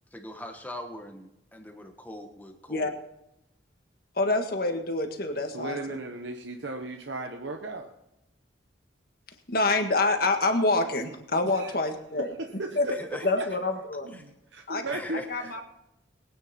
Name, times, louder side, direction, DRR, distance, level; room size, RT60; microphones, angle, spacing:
voice 1, 0.1-2.9 12.9-13.3 14.1-14.2 14.9-15.3, left 1 dB, 10° left, 4 dB, 1.4 m, -41 dB
voice 2, 4.2-5.8 9.5-12.3 12.8-12.9 13.2-14.1 14.7-14.8 15.3-15.6, left 2 dB, 50° left, 5 dB, 1.7 m, -26 dB
voice 3, 5.5-7.9 11.4-11.7 12.2-12.9 13.4-13.5 13.7-15.6, right 2 dB, 70° right, 4 dB, 1.1 m, -36 dB
21.5 x 9.6 x 4.3 m, 0.86 s
head